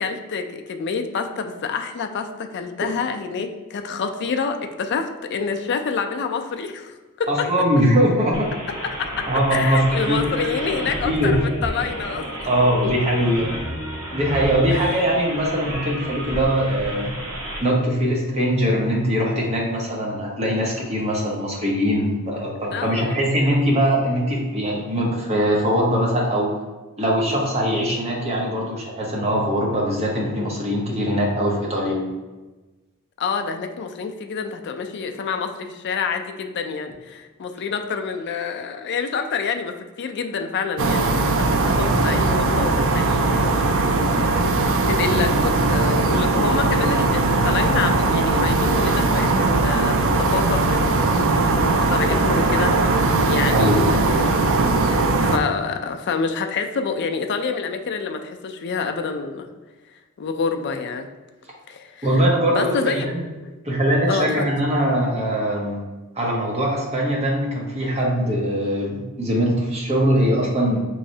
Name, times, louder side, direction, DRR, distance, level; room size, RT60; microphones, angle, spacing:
voice 1, 0.0-7.5 9.0-12.5 12.8-12.9 14.7-14.8 22.7-23.3 33.2-52.7 53.0-54.4 54.9-59.5 60.2-61.1 61.7-62.2 62.5-63.1 63.4-63.5 64.1-64.5, left 5 dB, 50° left, 6 dB, 0.4 m, -27 dB
voice 2, 7.3-8.5 9.3-10.5 11.0-11.3 12.4-13.5 14.1-17.1 17.6-26.5 27.0-32.0 53.5-54.0 62.0-63.2 63.6-65.8 66.1-70.8, equal, 30° right, -3 dB, 1.0 m, -21 dB
sound 1, 8.3-17.6, equal, 85° right, 1.1 m, -31 dB
sound 2, 40.8-55.4, right 3 dB, 60° right, 0.4 m, -19 dB
5.6 x 3.1 x 2.7 m, 1.2 s
head